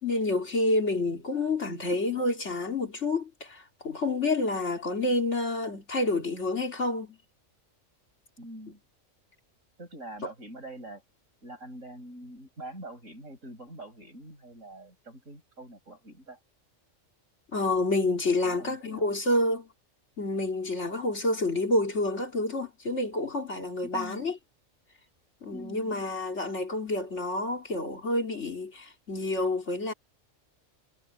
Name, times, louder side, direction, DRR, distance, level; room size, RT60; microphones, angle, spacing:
voice 1, 0.0-7.2 17.5-19.7 20.2-24.4 25.4-29.9, left 2 dB, 60° left, 3.3 m, -28 dB
voice 2, 8.4-8.8 9.8-11.0 11.4-16.4 18.4-19.1 23.8-24.3 25.5-26.0, right 1 dB, 80° right, 8.3 m, -44 dB
omnidirectional pair, 1.3 m